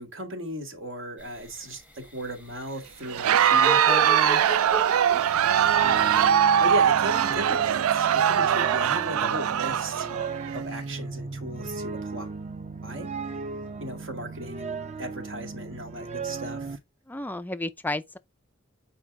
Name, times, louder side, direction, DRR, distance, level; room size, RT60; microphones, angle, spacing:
voice 1, 0.0-4.4 5.8-10.1 10.5-12.3 12.8-13.4 13.8-16.8, equal, 65° right, 1.9 m, -36 dB
sound 1, 1.2-6.3, right 2 dB, 5° right, 1.0 m, -36 dB
Crowd, 3.1-10.6, right 9 dB, 90° right, 0.4 m, -22 dB
sound 2, 5.0-16.8, right 4 dB, 35° right, 0.7 m, -36 dB
voice 2, 17.1-18.2, left 1 dB, 10° left, 0.3 m, -33 dB
8.0 x 4.7 x 3.6 m
head